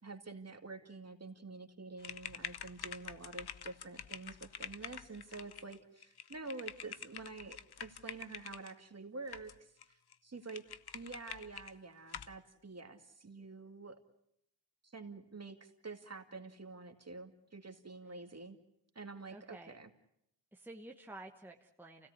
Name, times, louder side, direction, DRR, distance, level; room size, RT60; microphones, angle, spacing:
voice 1, 0.0-10.6 10.9-13.9 14.8-18.6 18.9-19.9, right 3 dB, 35° right, 6 dB, 2.2 m, -48 dB
sound 1, 2.0-8.7 9.3-9.8 10.1-10.2 10.5-11.7 12.1-12.4, left 8 dB, 55° left, 0.9 m, -47 dB
voice 2, 19.3-19.8 20.5-22.1, right 2 dB, 5° right, 2 dB, 1.2 m, -51 dB
28.5 x 17.0 x 8.3 m, 0.75 s
wide cardioid pair, 105°, 45 cm